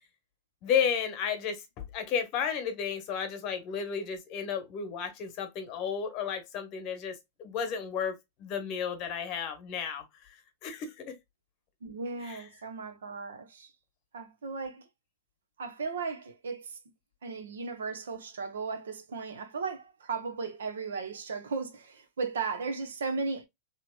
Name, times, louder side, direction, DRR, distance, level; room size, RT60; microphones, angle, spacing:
voice 1, 0.6-8.1 8.4-10.4 10.6-11.1 12.2-12.4, left 7 dB, 45° left, 1.1 m, -33 dB
voice 2, 11.8-13.7 14.1-14.9 15.6-16.8 17.2-23.5, right 4 dB, 80° right, 0.8 m, -36 dB
2.9 x 2.9 x 2.3 m
hypercardioid pair, 100°, 0 cm